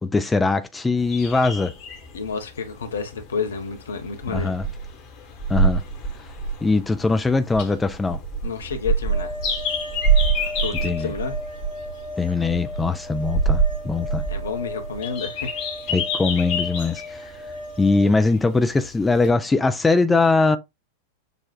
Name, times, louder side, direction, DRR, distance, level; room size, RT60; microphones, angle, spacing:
voice 1, 0.0-1.7 4.3-4.7 5.5-5.8 6.6-8.2 10.8-11.1 12.2-14.2 15.9-17.3 17.8-20.6, left 3 dB, 10° left, 0.4 m, -21 dB
sound 1, 1.0-19.3, right 3 dB, 40° left, 1.1 m, -27 dB
voice 2, 2.1-4.5 8.4-9.3 10.6-11.4 14.3-15.6, left 5 dB, 65° left, 0.8 m, -30 dB
sound 2, 9.1-18.1, left 1 dB, 65° right, 1.9 m, -36 dB
6.5 x 2.4 x 2.2 m
figure-of-eight pair, 90°, 0 cm